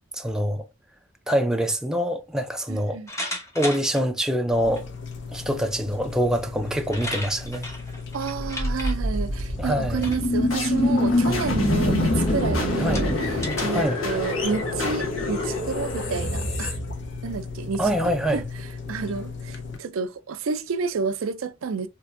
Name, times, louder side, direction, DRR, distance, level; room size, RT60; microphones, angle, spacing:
voice 1, 0.1-0.7 1.3-3.0 3.6-4.9 5.3-7.7 9.6-10.1 11.3-11.6 12.8-13.0 13.7-14.0 17.8-18.4, equal, 5° right, 0.4 m, -25 dB
voice 2, 2.7-3.1 8.1-16.8 17.2-18.4 18.9-21.9, right 5 dB, 85° right, 0.4 m, -30 dB
sound 1, 3.1-4.0 4.8-4.9 6.3-6.4 6.7-8.9 9.9-10.3 10.7-11.0 11.7-11.8 12.4-12.5 12.9-13.6, left 1 dB, 15° left, 0.8 m, -34 dB
sound 2, 4.5-19.8, left 4 dB, 65° left, 0.7 m, -37 dB
sound 3, 8.4-17.5, left 1 dB, 90° left, 1.1 m, -25 dB
3.4 x 2.8 x 2.5 m
head